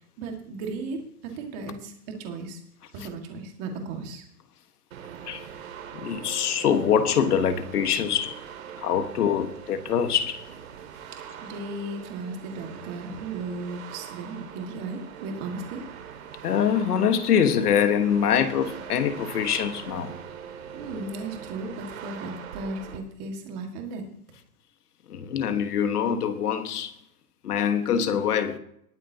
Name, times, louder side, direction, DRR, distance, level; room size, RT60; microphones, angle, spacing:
voice 1, 0.2-1.0 1.4-2.6 2.9-4.2 11.4-15.8 20.7-24.0, right 3 dB, 30° right, 1.8 m, -35 dB
sound 1, 4.9-23.0, right 8 dB, 65° right, 2.1 m, -42 dB
voice 2, 5.9-8.4 8.8-10.4 16.4-20.2 25.1-26.9 27.4-28.6, left 8 dB, 85° left, 1.5 m, -24 dB
20.0 x 9.1 x 2.8 m
hypercardioid pair, 170°, 45 cm